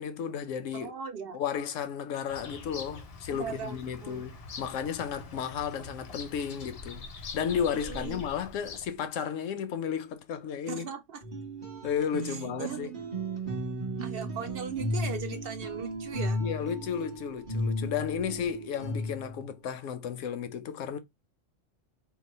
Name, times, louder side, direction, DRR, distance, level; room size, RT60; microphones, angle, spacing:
voice 1, 0.0-0.9 1.3-7.1 7.3-10.9 11.8-12.9 16.4-21.0, left 8 dB, 80° left, 0.9 m, -33 dB
voice 2, 0.7-1.4 3.3-3.8 4.0-4.2 7.7-8.2 10.7-11.2 12.3-12.9 14.0-16.4, right 6 dB, 60° right, 0.7 m, -38 dB
Bird vocalization bird call bird song, 2.3-9.0, left 3 dB, 65° left, 0.3 m, -44 dB
sound 1, 11.2-19.4, equal, 35° right, 1.0 m, -35 dB
3.0 x 2.1 x 4.0 m
omnidirectional pair, 1.3 m